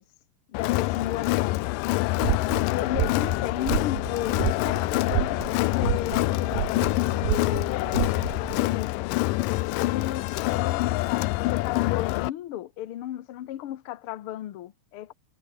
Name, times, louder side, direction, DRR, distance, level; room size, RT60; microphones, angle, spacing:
Crowd, 0.5-12.3, left 19 dB, 85° left, 2.3 m, -26 dB
voice 1, 0.5-1.7 2.6-9.2 9.8-15.1, left 13 dB, 65° left, 1.5 m, -34 dB
sound 1, 2.2-8.6, right 15 dB, 80° right, 2.6 m, -31 dB
omnidirectional pair, 3.8 m